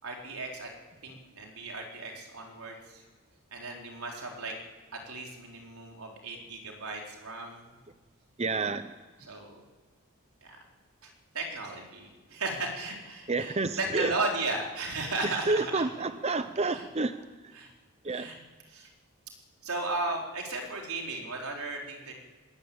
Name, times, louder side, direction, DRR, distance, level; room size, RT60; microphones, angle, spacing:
voice 1, 0.0-0.7 1.0-3.0 3.5-4.6 4.9-7.7 9.2-9.6 10.4-10.6 11.0-15.8 16.7-16.8 17.5-17.7 18.1-18.4 18.7-18.9 19.6-22.1, right 2 dB, 85° right, 0 dB, 4.4 m, -35 dB
voice 2, 8.4-8.9 13.3-14.1 15.2-17.3 18.0-18.3, right 3 dB, 30° right, 10 dB, 0.7 m, -29 dB
21.5 x 20.0 x 8.9 m, 1.4 s
head